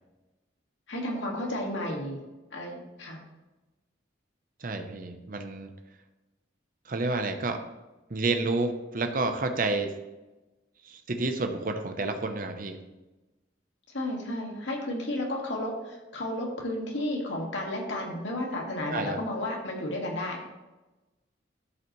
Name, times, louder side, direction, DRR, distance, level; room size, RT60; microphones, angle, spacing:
voice 1, 0.9-2.2 2.5-3.2 13.9-20.4, left 1 dB, 75° left, -1 dB, 1.9 m, -32 dB
voice 2, 4.6-5.7 6.8-7.6 8.1-9.9 10.8-12.8 18.9-19.2, right 3 dB, 45° right, 6 dB, 0.7 m, -30 dB
12.5 x 5.5 x 3.1 m, 1.1 s
head